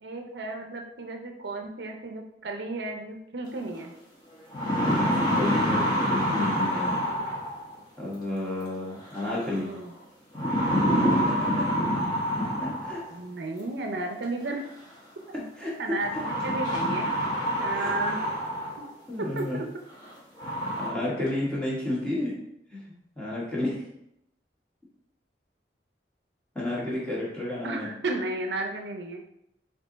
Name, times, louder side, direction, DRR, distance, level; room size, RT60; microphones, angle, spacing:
voice 1, 0.0-3.9 9.6-9.9 13.1-14.6 15.3-15.4 15.8-17.1 17.6-18.2 19.2-19.7 27.6-29.2, right 2 dB, 70° right, 3 dB, 0.6 m, -33 dB
sound 1, 3.8-3.9 4.3-7.7 9.1-9.6 10.3-13.1 14.4-14.5 16.0-18.9 19.4-19.5 20.0-20.1 20.4-20.9, equal, 25° left, 1.2 m, -26 dB
voice 2, 4.8-6.9 8.0-9.7 11.3-11.7 12.6-13.0 15.6-15.7 16.1-16.2 17.7-18.0 19.1-19.6 20.5-22.3 22.7-22.8 23.1-23.8 26.5-27.9, left 1 dB, 5° left, -7 dB, 1.4 m, -31 dB
4.5 x 2.7 x 3.9 m, 0.78 s
head